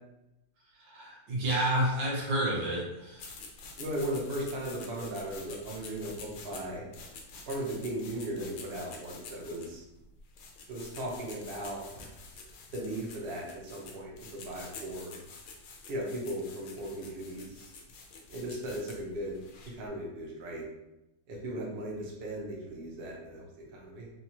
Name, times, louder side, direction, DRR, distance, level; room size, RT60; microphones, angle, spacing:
voice 1, 0.8-3.3, right 1 dB, 80° right, -3 dB, 1.7 m, -30 dB
sound 1, 3.2-19.9, left 3 dB, 80° left, 1.4 m, -48 dB
voice 2, 3.8-6.8 7.5-9.8 10.7-11.8 12.7-15.2 15.9-17.7 18.3-19.4 19.7-20.7 21.3-24.1, right 1 dB, 45° right, -2 dB, 0.8 m, -37 dB
4.0 x 2.9 x 2.9 m, 0.92 s
omnidirectional pair, 2.0 m